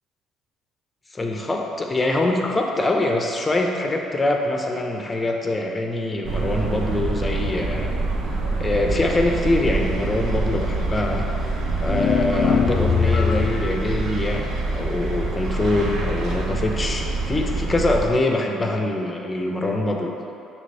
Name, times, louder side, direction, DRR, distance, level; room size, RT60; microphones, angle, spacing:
voice 1, 1.1-7.9 8.6-11.2 11.8-20.1, left 2 dB, 20° left, 2 dB, 0.8 m, -24 dB
sound 1, 6.2-18.0, right 3 dB, 55° right, 0.9 m, -26 dB
sound 2, 11.9-13.7, left 6 dB, 45° left, 0.4 m, -21 dB
6.3 x 3.4 x 5.5 m, 2.7 s
supercardioid pair, 80°, 0 cm